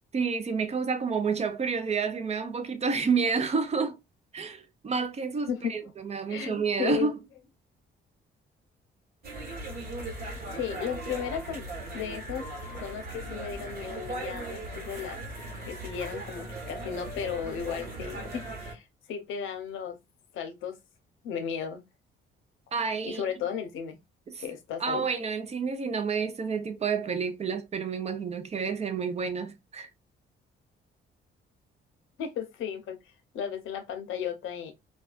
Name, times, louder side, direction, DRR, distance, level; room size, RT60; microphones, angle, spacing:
voice 1, 0.1-4.0 4.3-7.2 22.7-23.2 24.3-24.4 24.8-29.9, right 5 dB, 35° right, 0.4 m, -29 dB
voice 2, 5.5-5.8 6.3-7.1 10.5-11.7 11.9-12.5 12.8-15.2 15.7-20.0 20.3-20.8 21.2-21.8 23.0-24.0 24.4-25.1 32.2-33.0 33.3-34.7, left 8 dB, 85° left, 0.6 m, -35 dB
sound 1, 9.2-18.7, right 1 dB, 50° right, 1.2 m, -38 dB
2.4 x 2.2 x 2.3 m
cardioid pair, 90°, 20 cm